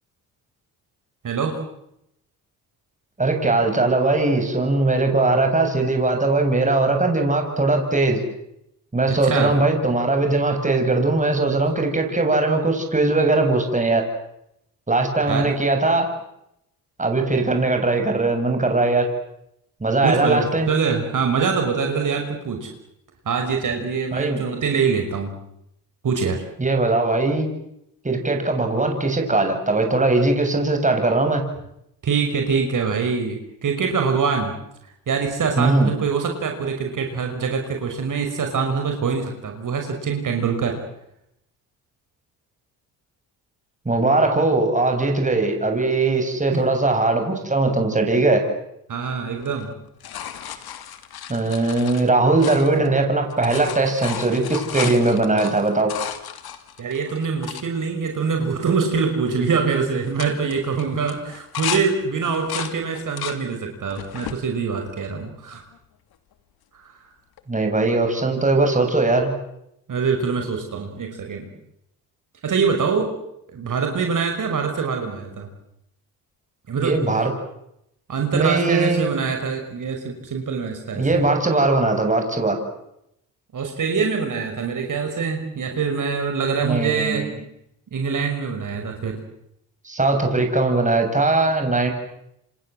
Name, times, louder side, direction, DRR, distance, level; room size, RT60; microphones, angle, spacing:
voice 1, 1.2-1.6 9.1-9.5 15.3-15.5 20.0-22.7 23.3-25.3 26.0-26.4 32.0-34.5 35.1-40.8 46.5-46.6 48.9-49.7 56.8-65.6 66.8-66.9 69.9-71.5 72.4-73.1 73.5-75.5 76.7-77.0 78.1-81.2 83.5-87.2 87.9-89.2, right 5 dB, 50° right, 3 dB, 5.7 m, -24 dB
voice 2, 3.2-8.2 8.9-14.1 14.9-16.1 17.0-19.1 19.8-20.7 24.1-24.4 26.6-27.5 28.0-31.4 35.6-35.9 43.9-48.4 51.3-55.9 67.5-69.3 76.8-77.3 78.3-79.1 81.0-82.6 86.6-87.4 89.8-91.9, right 2 dB, 20° right, 4 dB, 7.5 m, -20 dB
sound 1, 49.4-53.0 53.3-57.7 58.2-58.3 58.5-59.0 59.3-59.6 60.0-61.8 62.2-63.4 63.9-64.4 65.0-65.8 67.4-67.5, left 10 dB, 65° left, 2.9 m, -34 dB
28.5 x 26.5 x 7.9 m, 0.81 s
supercardioid pair, 80°, 40 cm